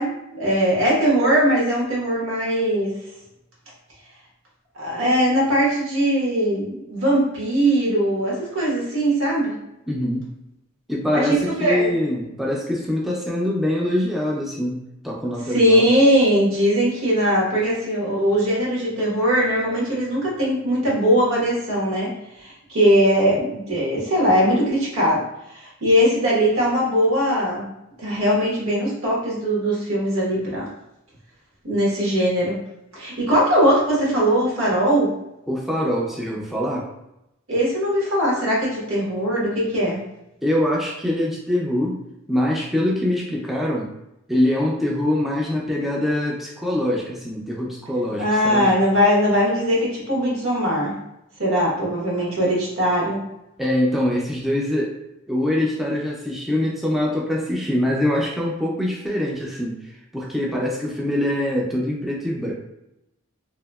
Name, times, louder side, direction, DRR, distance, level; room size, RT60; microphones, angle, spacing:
voice 1, 0.0-2.9 4.7-9.5 11.1-11.9 15.5-22.1 22.4-25.3 25.5-27.7 28.0-30.7 31.6-32.6 32.9-35.1 37.5-40.0 48.2-50.9 51.4-53.2, equal, 80° right, -5 dB, 1.1 m, -20 dB
voice 2, 9.9-10.3 10.9-15.9 35.5-36.9 40.4-42.0 42.3-43.9 44.3-48.7 53.6-54.9 55.3-62.5, left 1 dB, ahead, -4 dB, 0.3 m, -24 dB
2.8 x 2.6 x 2.2 m, 0.88 s
head